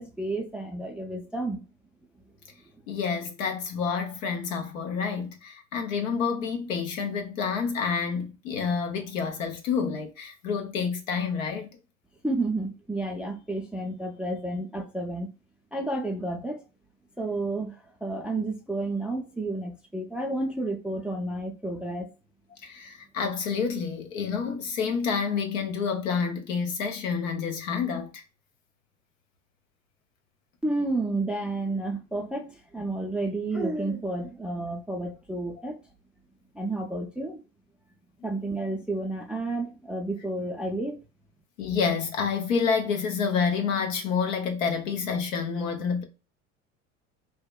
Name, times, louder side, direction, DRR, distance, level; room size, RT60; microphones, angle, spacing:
voice 1, 0.0-1.6 12.2-15.3 15.7-16.6 17.2-22.1 30.6-35.8 36.5-37.4 38.2-41.0, right 2 dB, 5° right, 0.4 m, -31 dB
voice 2, 2.9-11.7 22.6-28.1 41.6-46.0, left 6 dB, 80° left, 0.7 m, -28 dB
2.8 x 2.1 x 2.2 m
hypercardioid pair, 70°, 39 cm